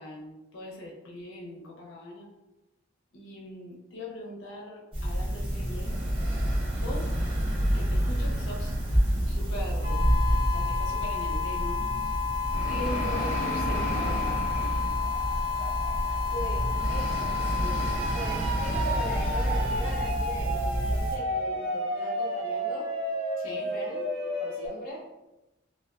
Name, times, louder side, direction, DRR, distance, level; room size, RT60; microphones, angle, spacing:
voice 1, 0.0-2.3 3.1-6.0 6.7-7.4 7.6-8.8 9.1-10.2 10.5-11.8 12.7-14.4 23.4-23.7, left 1 dB, 85° left, -2 dB, 0.6 m, -40 dB
sound 1, 4.9-21.2, equal, 25° right, 0.7 m, -28 dB
sound 2, 9.8-24.7, left 3 dB, 65° right, 0.7 m, -31 dB
sound 3, 12.7-21.5 21.8-22.0, equal, 10° left, 0.8 m, -45 dB
voice 2, 16.3-22.9 23.5-24.1 24.4-25.1, equal, 45° left, -4 dB, 0.5 m, -39 dB
2.3 x 2.3 x 2.3 m, 0.98 s
head